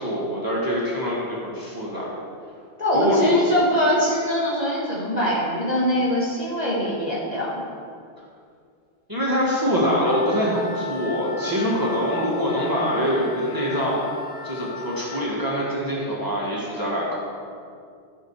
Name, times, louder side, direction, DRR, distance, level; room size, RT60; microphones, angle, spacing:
voice 1, 0.0-2.1 2.9-3.4 9.1-14.0 14.4-17.2, equal, 20° right, -6 dB, 1.8 m, -24 dB
voice 2, 2.8-7.5, equal, 40° left, -7 dB, 2.8 m, -23 dB
Wind instrument woodwind instrument, 10.0-15.2, left 6 dB, 65° left, 1.2 m, -36 dB
13.0 x 6.0 x 4.9 m, 2.3 s
omnidirectional pair, 1.0 m